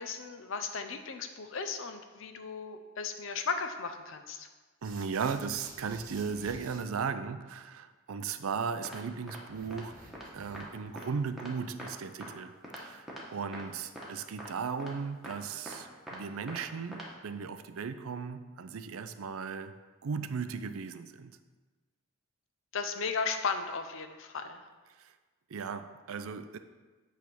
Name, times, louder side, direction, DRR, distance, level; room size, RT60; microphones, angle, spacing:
voice 1, 0.0-4.5 22.7-24.6, left 5 dB, 65° left, 7 dB, 0.7 m, -36 dB
sound 1, 4.8-6.8 9.5-10.8, right 2 dB, 40° right, 1.1 m, -51 dB
voice 2, 4.8-10.0 10.3-19.8 20.0-21.4 24.9-25.2 25.5-26.6, right 5 dB, 80° right, 11 dB, 0.5 m, -36 dB
sound 2, 8.9-9.0 9.3-9.4 9.7-9.8 10.1-10.3 10.5-10.6 11.0-11.1 11.4-11.5 11.8-11.9 12.2-12.3 12.6-12.8 13.1-13.2 13.5-13.6 14.0-14.1 14.4-14.5 14.8-14.9 15.2-15.4 15.7-16.2 16.5-16.6 16.9-17.1, equal, ahead, 1.2 m, -43 dB
8.3 x 3.5 x 6.1 m, 1.3 s
head